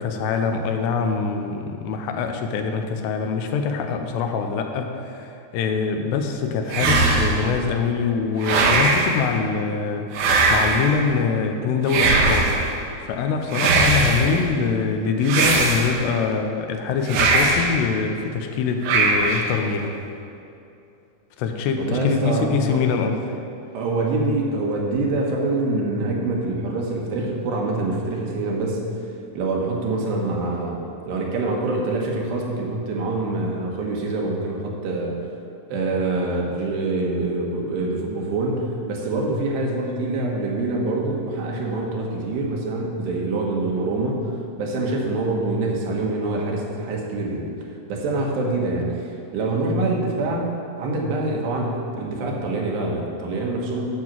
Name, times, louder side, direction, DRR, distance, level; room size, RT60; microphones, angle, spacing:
voice 1, 0.0-12.5 13.1-20.0 21.4-23.4, left 5 dB, 85° left, 5 dB, 2.9 m, -24 dB
sound 1, 6.7-7.5 8.4-9.2 10.1-10.9 11.9-12.7 13.5-14.3 15.2-16.1 17.1-17.7 18.8-19.5, right 3 dB, 70° right, 2.7 m, -19 dB
voice 2, 21.8-22.8 23.8-28.9 29.4-35.2 35.7-44.3 44.6-50.5 50.8-53.9, right 2 dB, 90° right, -1 dB, 3.5 m, -25 dB
10.5 x 6.1 x 7.5 m, 2.7 s
omnidirectional pair, 4.7 m